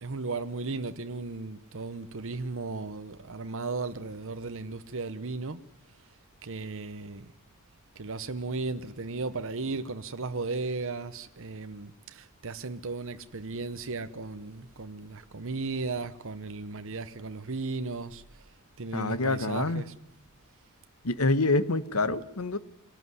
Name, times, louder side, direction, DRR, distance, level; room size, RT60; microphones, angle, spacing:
voice 1, 0.0-5.6 6.4-7.3 8.0-18.5 18.8-19.9, right 3 dB, 65° right, 1.0 m, -35 dB
voice 2, 18.9-19.8 21.0-22.6, left 2 dB, 90° left, 1.5 m, -26 dB
24.0 x 18.0 x 9.7 m
head